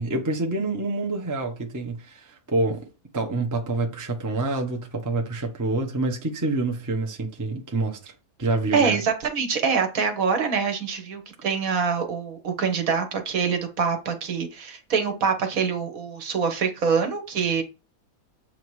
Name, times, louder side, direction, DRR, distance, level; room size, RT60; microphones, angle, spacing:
voice 1, 0.0-2.9 3.1-8.1 8.4-9.0, right 2 dB, 15° right, 0.6 m, -27 dB
voice 2, 8.7-17.6, right 6 dB, 60° right, 1.3 m, -25 dB
7.2 x 2.8 x 4.7 m
omnidirectional pair, 1.7 m